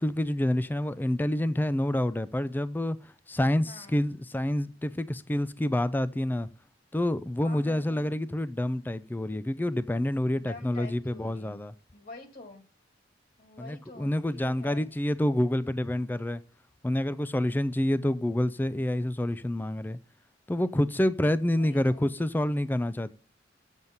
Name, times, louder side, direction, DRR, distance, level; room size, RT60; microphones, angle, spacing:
voice 1, 0.0-6.5 6.9-11.7 13.6-16.4 16.8-20.0 20.5-23.1, left 1 dB, 10° left, 0.4 m, -28 dB
voice 2, 3.6-4.0 7.4-8.1 10.3-11.6 11.9-12.6 13.4-14.9 21.5-22.1, left 2 dB, 50° left, 2.5 m, -47 dB
7.9 x 7.2 x 5.5 m
head